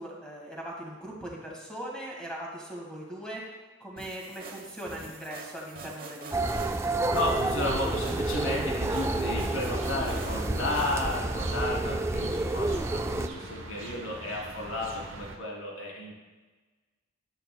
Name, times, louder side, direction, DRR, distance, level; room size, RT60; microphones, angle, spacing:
voice 1, 0.0-3.4 3.8-6.8, right 1 dB, 5° left, -3 dB, 1.9 m, -40 dB
sound 1, 4.0-11.2, right 3 dB, 45° right, 1.0 m, -45 dB
sound 2, 6.3-13.3, right 2 dB, 15° right, 0.3 m, -29 dB
voice 2, 7.1-16.1, left 1 dB, 90° left, -3 dB, 3.0 m, -33 dB
sound 3, 7.7-15.4, right 2 dB, 75° right, 1.0 m, -43 dB
11.0 x 10.5 x 2.2 m, 1.2 s
head